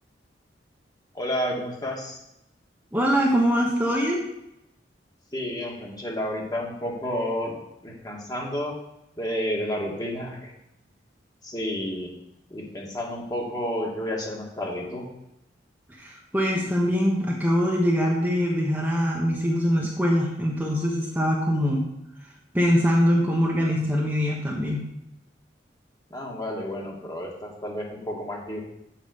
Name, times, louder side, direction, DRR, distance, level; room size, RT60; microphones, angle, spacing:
voice 1, 1.1-2.2 5.3-7.6 7.8-8.7 9.2-10.5 11.4-12.1 12.5-15.1 26.1-28.6, equal, 20° left, -1 dB, 1.8 m, -31 dB
voice 2, 2.9-4.2 16.0-21.9 22.5-24.8, equal, 10° right, -3 dB, 1.1 m, -23 dB
7.4 x 5.0 x 7.0 m, 0.86 s
head